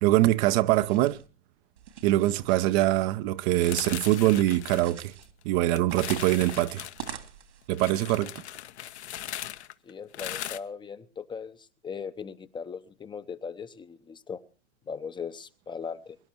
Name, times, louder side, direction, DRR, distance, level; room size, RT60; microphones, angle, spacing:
voice 1, 0.0-1.2 2.0-5.1 5.4-6.9 7.7-8.3, right 15 dB, 35° right, 0.7 m, -23 dB
sound 1, 0.6-1.3 1.8-2.9 3.5-4.4 4.7-5.3 5.9-7.7, right 9 dB, 70° right, 2.6 m, -44 dB
sound 2, 3.6-5.4 5.8-7.2 7.7-10.6, left 12 dB, 65° left, 1.1 m, -39 dB
voice 2, 9.8-14.4 14.9-16.2, left 6 dB, 15° left, 0.7 m, -39 dB
23.5 x 11.0 x 4.5 m
hypercardioid pair, 110°, 35 cm